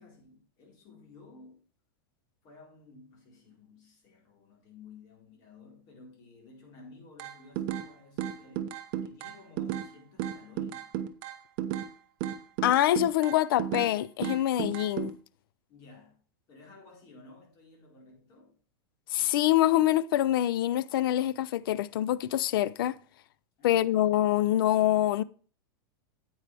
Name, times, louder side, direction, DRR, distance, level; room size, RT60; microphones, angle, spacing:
voice 1, 0.0-1.7 2.4-10.9 15.7-16.2 16.5-18.6 23.6-24.1, left 3 dB, 35° left, 4.4 m, -54 dB
sound 1, 7.2-7.9 8.2-9.9 10.2-11.9 12.2-13.9 14.2-15.1, right 11 dB, 40° right, 0.8 m, -33 dB
voice 2, 12.6-15.1 19.1-23.0 23.6-25.2, left 13 dB, 75° left, 0.5 m, -25 dB
9.7 x 8.8 x 3.4 m
supercardioid pair, 160°, 12 cm